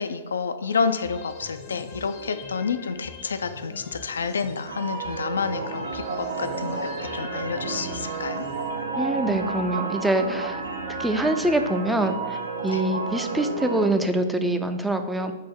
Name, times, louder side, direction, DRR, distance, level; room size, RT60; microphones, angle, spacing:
voice 1, 0.0-8.4 12.7-12.9, left 5 dB, 75° left, 10 dB, 0.3 m, -29 dB
sound 1, 0.7-8.7, left 5 dB, 40° left, 0.6 m, -43 dB
sound 2, 4.7-13.9, right 4 dB, 80° right, 0.6 m, -31 dB
voice 2, 9.0-10.6 11.0-12.4 12.6-15.3, right 1 dB, 5° right, 7 dB, 0.4 m, -24 dB
5.6 x 2.1 x 4.5 m, 1.2 s
figure-of-eight pair, 110°, 0 cm